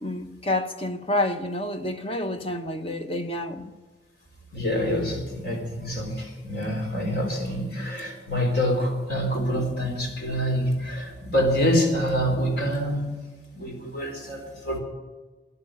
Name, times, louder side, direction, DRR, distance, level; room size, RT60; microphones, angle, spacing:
voice 1, 0.0-3.7, left 1 dB, 30° left, 1.0 m, -28 dB
voice 2, 4.5-13.2 13.5-14.8, equal, 60° left, 3.8 m, -26 dB
13.5 x 11.0 x 8.8 m
head